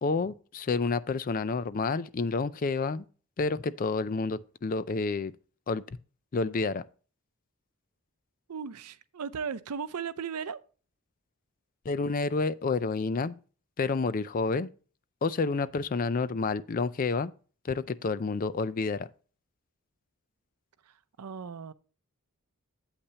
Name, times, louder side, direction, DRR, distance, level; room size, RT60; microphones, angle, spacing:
voice 1, 0.0-3.1 3.4-5.3 5.7-6.0 6.3-6.8 11.8-13.4 13.8-14.7 15.2-17.3 17.6-19.1, left 4 dB, 40° left, 0.4 m, -29 dB
voice 2, 8.5-10.6 21.2-21.7, right 6 dB, 90° right, 0.6 m, -36 dB
8.6 x 8.2 x 2.9 m
head